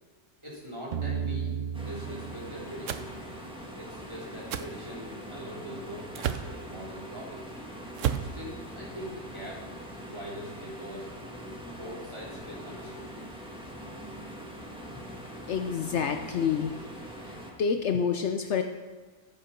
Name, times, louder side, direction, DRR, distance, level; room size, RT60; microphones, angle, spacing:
voice 1, 0.4-3.1 3.8-7.5 8.2-9.6 10.0-11.1 11.7-13.1, equal, 20° right, -6 dB, 3.7 m, -42 dB
sound 1, 0.9-3.8, right 7 dB, 55° right, 0.5 m, -35 dB
sound 2, 1.7-17.5, equal, 5° right, 1.7 m, -43 dB
sound 3, 2.9-3.1 4.5-4.7 6.1-6.5 7.9-8.3, right 9 dB, 80° right, 1.0 m, -30 dB
voice 2, 15.5-16.7 17.3-18.6, left 7 dB, 70° left, 6 dB, 1.0 m, -28 dB
13.5 x 9.2 x 5.3 m, 1.4 s
omnidirectional pair, 1.3 m